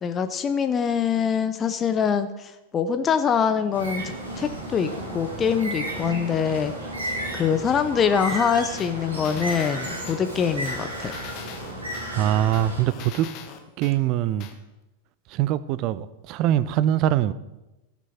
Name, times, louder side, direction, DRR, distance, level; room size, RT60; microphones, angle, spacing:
voice 1, 0.0-6.7 7.3-11.2, left 7 dB, 25° left, 10 dB, 0.6 m, -24 dB
Bird, 3.7-12.8, right 1 dB, 75° right, 2.8 m, -33 dB
sound 1, 8.8-10.2 10.6-12.1 12.5-13.9 14.4-14.5, left 8 dB, 40° left, 1.1 m, -42 dB
voice 2, 12.1-13.3 13.8-14.5 15.3-17.3, right 12 dB, 40° right, 16 dB, 0.5 m, -23 dB
14.5 x 6.1 x 4.3 m, 1.0 s
figure-of-eight pair, 90°, 0 cm